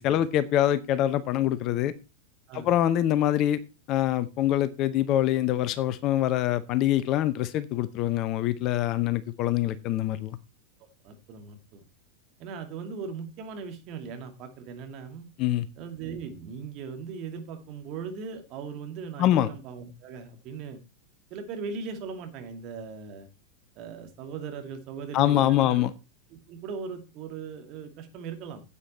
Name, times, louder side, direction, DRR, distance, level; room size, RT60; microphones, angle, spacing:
voice 1, 0.0-1.9 2.5-3.6 3.9-10.4 15.4-15.7 19.2-19.5 25.1-25.9, left 12 dB, 40° left, 0.7 m, -24 dB
voice 2, 11.0-11.8 12.4-15.3 15.8-20.8 21.3-23.3 23.8-25.8 26.3-28.6, right 5 dB, 40° right, 2.4 m, -39 dB
9.8 x 8.3 x 4.3 m
figure-of-eight pair, 90°, 0 cm